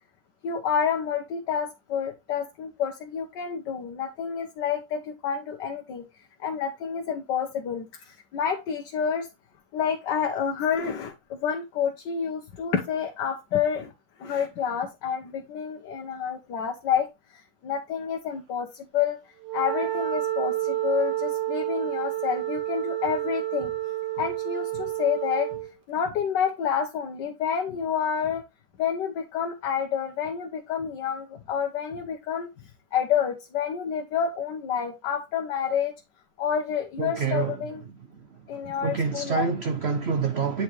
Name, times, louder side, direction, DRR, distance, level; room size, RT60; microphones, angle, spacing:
voice 1, 0.4-6.0 6.4-9.3 9.7-13.9 14.2-17.1 17.6-19.2 19.5-23.7 24.2-25.5 25.9-28.4 28.8-32.5 32.9-35.9 36.4-37.8 38.5-39.5, left 7 dB, 70° left, 1.5 m, -28 dB
Wind instrument woodwind instrument, 19.4-25.7, right 14 dB, 85° right, 2.0 m, -29 dB
voice 2, 37.0-37.5 38.8-40.6, right 5 dB, 65° right, 0.6 m, -26 dB
9.3 x 4.5 x 3.1 m
omnidirectional pair, 2.0 m